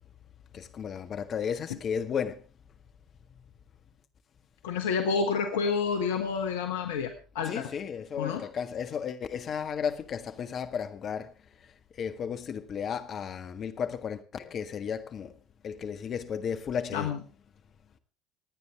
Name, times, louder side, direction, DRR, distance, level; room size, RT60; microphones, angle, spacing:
voice 1, 0.5-2.4 7.4-15.4 15.6-17.1, left 7 dB, 45° left, 1.6 m, -34 dB
voice 2, 4.6-7.7 8.2-8.4 16.9-17.2, left 5 dB, 75° left, 1.2 m, -29 dB
27.5 x 9.4 x 3.5 m
hypercardioid pair, 65°, 0 cm